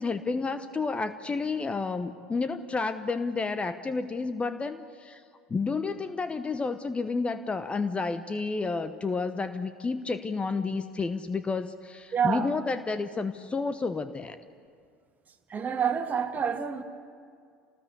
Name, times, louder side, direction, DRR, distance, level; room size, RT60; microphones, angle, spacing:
voice 1, 0.0-5.2 5.5-14.4, left 4 dB, 20° left, 11 dB, 1.0 m, -30 dB
voice 2, 12.1-12.5 15.5-16.8, right 7 dB, 30° right, 6 dB, 2.1 m, -28 dB
27.5 x 19.5 x 8.2 m, 2.2 s
figure-of-eight pair, 70°, 6 cm